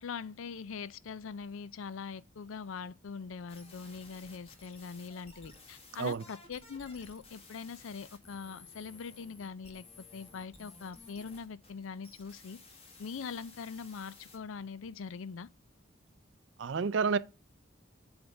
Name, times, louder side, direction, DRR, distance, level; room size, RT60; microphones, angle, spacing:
voice 1, 0.0-12.6 13.0-15.5, left 5 dB, 75° left, 0.4 m, -42 dB
sound 1, 3.5-14.4, left 3 dB, 30° left, 1.5 m, -55 dB
voice 2, 16.6-17.2, right 5 dB, 60° right, 0.4 m, -29 dB
7.9 x 3.5 x 6.3 m
head